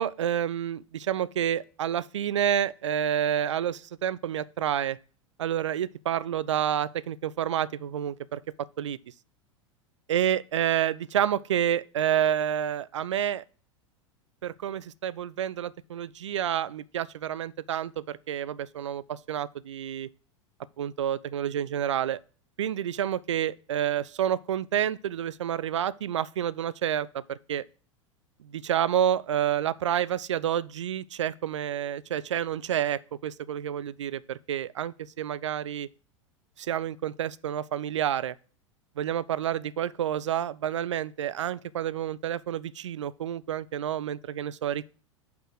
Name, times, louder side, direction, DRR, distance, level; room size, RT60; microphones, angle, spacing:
voice 1, 0.0-5.0 5.4-8.4 8.8-9.0 10.1-13.4 14.4-20.1 20.8-22.2 22.6-27.6 28.4-35.9 36.6-38.4 39.0-44.9, right 10 dB, 70° right, 0.4 m, -29 dB
5.6 x 4.2 x 6.2 m
figure-of-eight pair, 85°, 16 cm